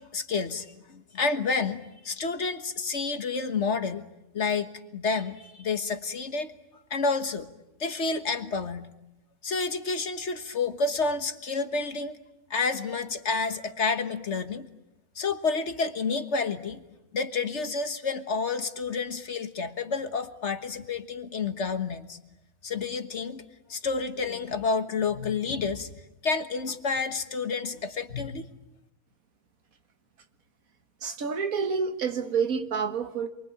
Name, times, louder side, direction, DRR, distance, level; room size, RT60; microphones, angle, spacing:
voice 1, 0.0-4.0 4.3-6.5 6.9-7.5 7.8-8.9 9.4-12.2 12.5-14.7 15.2-16.8 17.1-22.2 22.6-23.4 23.7-25.9 26.2-28.5, left 4 dB, 55° left, 1.7 m, -29 dB
voice 2, 31.0-33.3, right 5 dB, 85° right, 2.0 m, -28 dB
28.0 x 23.0 x 8.9 m
omnidirectional pair, 1.4 m